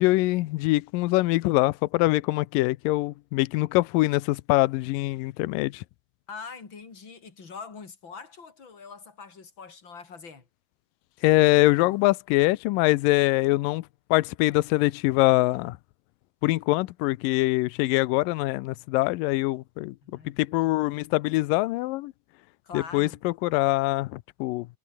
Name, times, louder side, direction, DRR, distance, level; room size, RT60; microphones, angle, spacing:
voice 1, 0.0-5.8 11.2-13.8 14.1-15.8 16.4-20.0 20.3-22.1 22.7-24.7, left 20 dB, 85° left, 1.9 m, -23 dB
voice 2, 6.3-10.5 20.0-20.7 22.6-23.2, left 5 dB, 30° left, 3.8 m, -43 dB
omnidirectional pair, 4.7 m